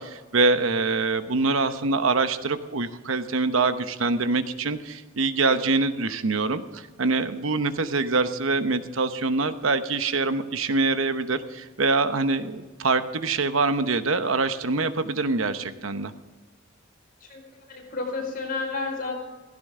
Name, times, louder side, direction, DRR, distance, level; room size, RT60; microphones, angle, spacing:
voice 1, 0.0-16.1, right 3 dB, 85° right, 10 dB, 1.0 m, -24 dB
voice 2, 17.7-19.2, left 3 dB, 45° left, 0 dB, 5.0 m, -31 dB
17.0 x 16.0 x 3.7 m, 1.3 s
head